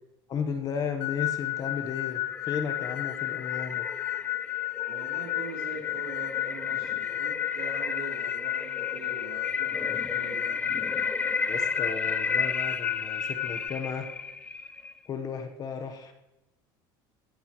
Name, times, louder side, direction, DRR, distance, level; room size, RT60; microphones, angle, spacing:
voice 1, 0.3-2.2 2.5-3.8 11.5-14.1 15.1-16.1, left 6 dB, 35° left, 7 dB, 1.1 m, -34 dB
sound 1, 1.0-13.7, left 20 dB, 60° left, 0.5 m, -33 dB
sound 2, 1.6-15.0, left 4 dB, 15° left, 0.4 m, -34 dB
voice 2, 4.9-10.4, right 4 dB, 85° right, -5 dB, 3.5 m, -43 dB
21.5 x 14.5 x 3.1 m, 0.98 s
cardioid pair, 145°, 11 cm